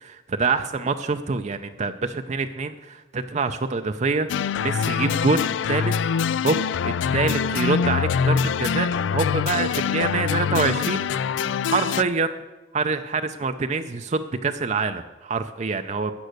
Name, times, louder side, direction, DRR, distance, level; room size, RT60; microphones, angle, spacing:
voice 1, 0.0-4.3 4.6-5.9 6.4-11.0 11.6-12.4 12.7-16.1, right 4 dB, 35° right, 8 dB, 0.5 m, -25 dB
sound 1, 4.3-12.0, left 6 dB, 70° left, 0.3 m, -24 dB
13.0 x 9.1 x 6.6 m, 1.2 s
head